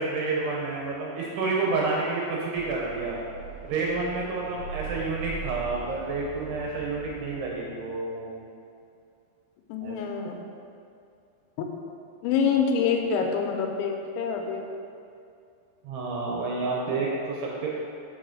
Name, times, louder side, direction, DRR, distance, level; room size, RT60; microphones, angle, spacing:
voice 1, 0.0-3.2 3.6-8.4 9.8-10.0 15.8-17.7, right 3 dB, 80° right, -3 dB, 2.6 m, -29 dB
sound 1, 2.6-7.6, right 4 dB, 65° left, 2.1 m, -41 dB
voice 2, 9.7-10.4 11.6-11.7 12.2-14.6, left 6 dB, 85° left, 3 dB, 3.0 m, -26 dB
6.3 x 4.7 x 6.0 m, 2.5 s
omnidirectional pair, 5.3 m